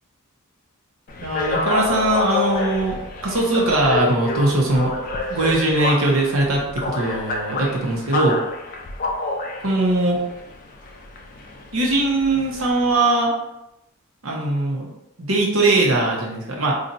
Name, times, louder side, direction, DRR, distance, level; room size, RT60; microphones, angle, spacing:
sound 1, 1.1-12.9, left 2 dB, 40° left, 0.4 m, -28 dB
voice 1, 1.2-3.0 3.2-4.9 5.3-8.4 9.6-10.2 11.7-13.3 14.2-14.9 15.2-16.8, right 2 dB, 70° right, -2 dB, 0.8 m, -20 dB
2.6 x 2.4 x 4.0 m, 0.88 s
head